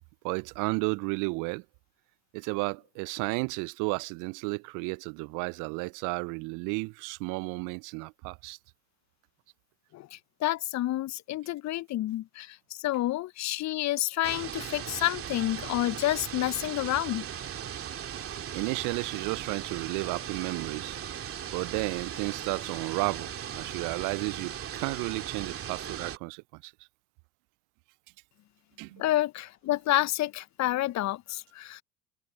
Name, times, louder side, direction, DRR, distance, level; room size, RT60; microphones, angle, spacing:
voice 1, 0.2-1.6 2.3-8.6 18.5-21.0 21.5-23.3 23.6-26.7 28.8-29.0, right 29 dB, 50° right, 0.7 m, -33 dB
voice 2, 9.9-17.3 29.0-31.8, left 15 dB, 40° left, 1.3 m, -29 dB
sound 1, 14.2-26.2, right 9 dB, 30° right, 2.8 m, -38 dB
figure-of-eight pair, 75°, 42 cm